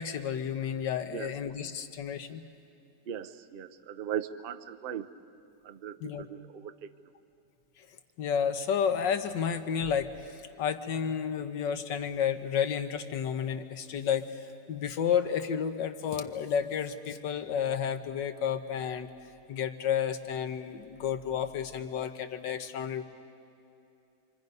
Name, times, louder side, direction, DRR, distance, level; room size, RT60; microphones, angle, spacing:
voice 1, 0.0-2.4 6.0-6.3 8.2-19.1 19.5-23.0, left 8 dB, 90° left, 7 dB, 1.7 m, -31 dB
voice 2, 3.1-5.1 5.6-6.9, right 9 dB, 75° right, 10 dB, 0.5 m, -38 dB
27.0 x 25.0 x 5.4 m, 2.7 s
omnidirectional pair, 1.9 m